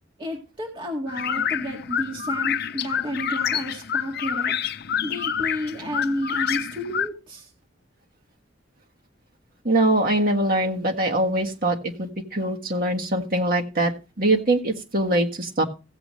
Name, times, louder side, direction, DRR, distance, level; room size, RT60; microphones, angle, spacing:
voice 1, 0.2-4.5 5.0-7.5, equal, 25° right, 1 dB, 1.9 m, -31 dB
sound 1, 1.1-7.1, left 8 dB, 55° left, 0.6 m, -27 dB
voice 2, 9.6-13.9 14.2-15.6, right 1 dB, 50° right, 2 dB, 1.7 m, -23 dB
16.0 x 8.0 x 3.1 m, 0.31 s
head